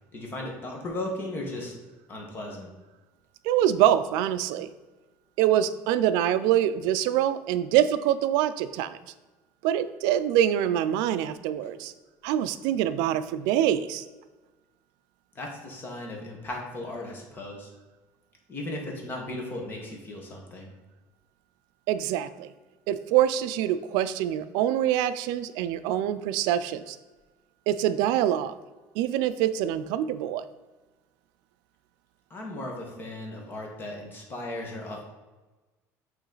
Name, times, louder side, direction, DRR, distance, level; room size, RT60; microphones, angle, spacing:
voice 1, 0.1-1.7 2.1-2.7 11.6-11.7 15.3-17.7 18.5-20.7 32.3-35.0, left 1 dB, 30° left, 0 dB, 1.4 m, -36 dB
voice 2, 3.4-4.7 5.4-9.0 9.6-11.9 12.2-14.0 21.9-22.5 22.9-27.0 27.7-28.5 29.0-30.4, right 11 dB, 85° right, 13 dB, 0.4 m, -25 dB
8.0 x 3.1 x 3.9 m, 1.2 s
cardioid pair, 130°, 7 cm